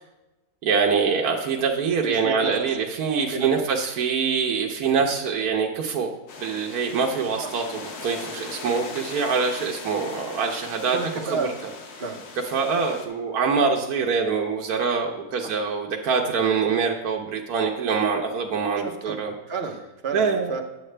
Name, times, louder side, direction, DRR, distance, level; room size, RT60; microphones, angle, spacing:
voice 1, 0.6-6.1 6.4-11.0 11.3-11.5 12.5-19.3 20.1-20.5, right 5 dB, 75° right, 0 dB, 1.3 m, -24 dB
voice 2, 2.1-2.6 3.3-3.5 7.4-7.5 10.9-11.5 12.0-12.2 15.4-15.5 18.8-19.2 19.5-20.6, right 4 dB, 45° right, 3 dB, 1.0 m, -30 dB
sound 1, 6.3-13.1, left 4 dB, 90° left, 1.5 m, -39 dB
9.7 x 7.3 x 3.2 m, 1.1 s
omnidirectional pair, 1.6 m